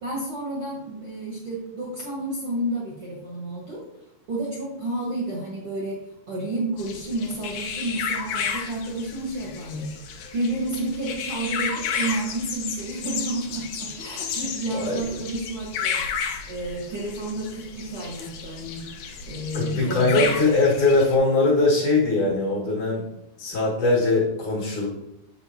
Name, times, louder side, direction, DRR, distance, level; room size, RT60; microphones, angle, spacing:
voice 1, 0.0-3.8 4.3-6.0 6.3-9.9 10.3-20.4, right 1 dB, 50° right, -5 dB, 1.8 m, -31 dB
sound 1, 6.8-21.2, left 6 dB, 80° left, 1.8 m, -32 dB
voice 2, 14.7-15.2 19.5-23.1 23.4-24.9, left 3 dB, 55° left, -4 dB, 3.0 m, -21 dB
7.7 x 7.1 x 2.9 m, 0.84 s
omnidirectional pair, 4.7 m